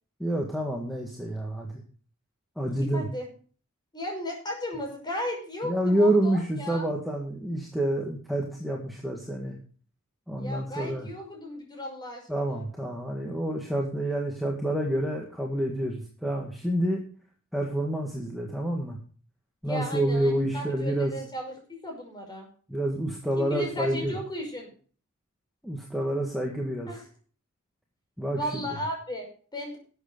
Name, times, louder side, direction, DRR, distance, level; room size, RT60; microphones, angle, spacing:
voice 1, 0.2-1.7 2.6-3.1 5.6-9.6 10.3-11.1 12.3-17.0 17.5-19.0 19.6-21.2 22.7-24.1 25.6-26.9 28.2-28.7, right 1 dB, ahead, -1 dB, 1.8 m, -28 dB
voice 2, 2.7-3.3 3.9-6.8 10.4-12.2 12.5-12.6 19.7-22.5 23.4-24.7 26.9-27.0 28.3-29.8, left 1 dB, 20° left, 1 dB, 5.5 m, -35 dB
12.5 x 8.1 x 5.3 m, 0.42 s
head